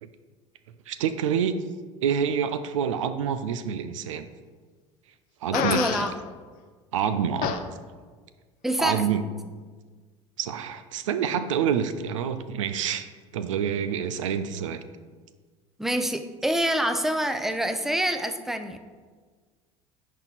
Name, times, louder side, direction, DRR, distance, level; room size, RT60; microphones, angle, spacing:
voice 1, 0.9-1.5 2.0-4.3 5.4-5.9 6.9-7.5 8.8-9.2 10.4-13.1 13.3-14.8, right 8 dB, 85° right, 11 dB, 0.5 m, -27 dB
Fart, 5.5-6.1 7.4-7.6, left 8 dB, 60° left, 0.7 m, -26 dB
voice 2, 5.5-6.1 8.6-9.1 15.8-18.8, right 1 dB, ahead, 8 dB, 0.7 m, -26 dB
9.9 x 4.5 x 4.1 m, 1.5 s
hypercardioid pair, 80°, 16 cm